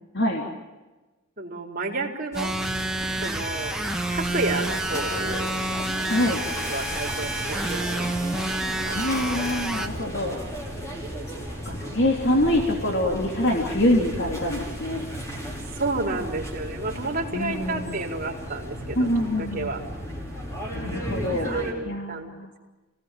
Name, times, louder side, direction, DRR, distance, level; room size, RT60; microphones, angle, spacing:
voice 1, 1.4-2.6 3.2-3.8 4.0-5.5 6.1-8.5 8.8-9.1 15.8-19.1 19.3-19.8 21.1-22.3, right 2 dB, 40° right, 1 dB, 4.2 m, -31 dB
sound 1, 2.3-21.7, right 1 dB, 15° left, 5.9 m, -34 dB
sound 2, 2.3-9.9, right 1 dB, 5° right, 1.6 m, -29 dB
voice 2, 6.1-6.4 8.9-10.4 11.4-15.0 17.3-18.0 18.9-19.7 20.7-21.5 21.8-22.5, left 1 dB, 55° left, 1 dB, 3.2 m, -25 dB
28.5 x 19.0 x 9.1 m, 1.2 s
head